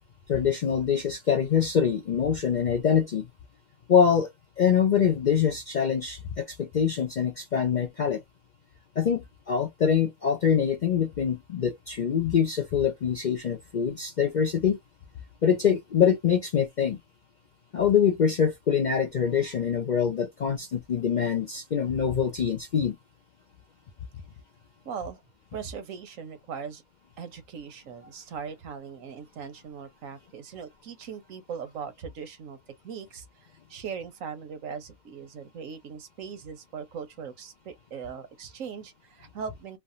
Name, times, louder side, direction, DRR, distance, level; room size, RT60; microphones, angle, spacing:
voice 1, 0.3-3.3 3.9-4.3 4.6-8.2 9.0-9.2 9.5-14.8 15.4-17.0 17.7-23.0, left 7 dB, 60° left, 0.4 m, -24 dB
voice 2, 24.8-25.2 25.5-26.8 27.2-32.6 32.8-39.8, right 6 dB, 85° right, 1.3 m, -39 dB
3.2 x 2.1 x 2.5 m
omnidirectional pair, 1.4 m